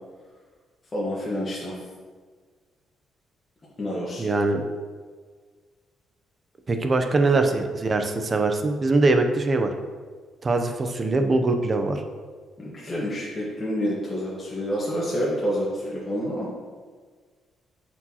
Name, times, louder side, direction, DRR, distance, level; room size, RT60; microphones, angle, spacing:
voice 1, 0.9-1.8 3.8-4.3 7.2-7.4 12.6-16.5, equal, 30° left, -7 dB, 1.4 m, -28 dB
voice 2, 4.2-4.6 6.7-9.7 10.4-12.0, right 3 dB, 35° right, 6 dB, 0.6 m, -22 dB
8.1 x 4.6 x 2.9 m, 1.5 s
cardioid pair, 90°, 0 cm